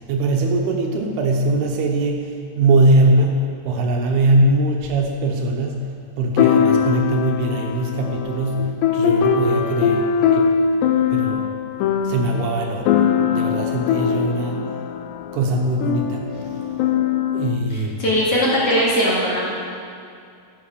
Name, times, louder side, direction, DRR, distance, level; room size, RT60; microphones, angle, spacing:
voice 1, 0.0-10.6 11.1-11.5 11.8-14.6 15.3-16.6 17.3-18.0, right 2 dB, 75° right, 2 dB, 2.8 m, -21 dB
sound 1, 4.8-4.9 6.4-17.6, left 7 dB, 90° left, 2.9 m, -21 dB
voice 2, 17.7-19.4, equal, 40° left, -7 dB, 2.8 m, -19 dB
14.5 x 8.5 x 6.7 m, 2.4 s
omnidirectional pair, 4.9 m